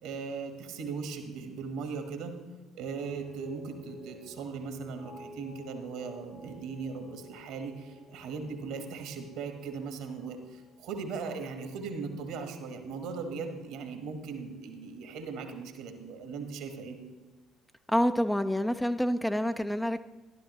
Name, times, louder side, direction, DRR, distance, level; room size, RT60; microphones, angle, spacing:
voice 1, 0.0-2.4 2.7-17.0, right 5 dB, 65° right, 6 dB, 1.4 m, -38 dB
sound 1, 3.0-13.3 13.6-14.2, left 2 dB, 85° left, 4.3 m, -52 dB
voice 2, 17.9-20.1, equal, 5° left, 9 dB, 0.5 m, -27 dB
13.0 x 11.5 x 3.1 m, 1.2 s
figure-of-eight pair, 55°, 0 cm